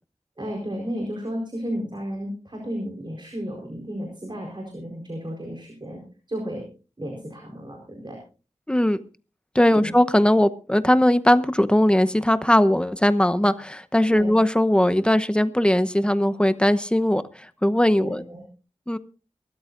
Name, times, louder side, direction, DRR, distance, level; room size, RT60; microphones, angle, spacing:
voice 1, 0.4-6.0 6.3-6.7 7.0-8.2 9.7-9.9 14.1-14.4 17.9-18.4, equal, 40° right, 1 dB, 4.3 m, -33 dB
voice 2, 8.7-9.0 9.5-17.2 17.6-18.2 18.9-19.0, left 1 dB, 10° left, 11 dB, 0.9 m, -19 dB
23.5 x 13.5 x 2.6 m, 0.34 s
wide cardioid pair, 60°, 12 cm